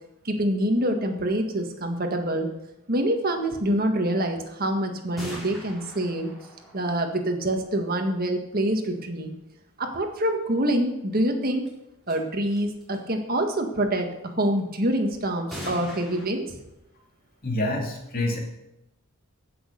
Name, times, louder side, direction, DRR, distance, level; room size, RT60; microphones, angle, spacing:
voice 1, 0.2-2.5 2.9-6.3 6.7-9.3 9.8-11.7 12.1-16.6, right 1 dB, 45° right, 4 dB, 1.7 m, -26 dB
sound 1, 5.2-8.0 11.7-11.8 12.1-12.2 12.5-13.0 15.5-16.3, equal, ahead, 4.3 m, -41 dB
voice 2, 17.4-18.4, left 1 dB, 40° left, 1 dB, 2.6 m, -27 dB
15.0 x 6.5 x 6.6 m, 0.89 s
head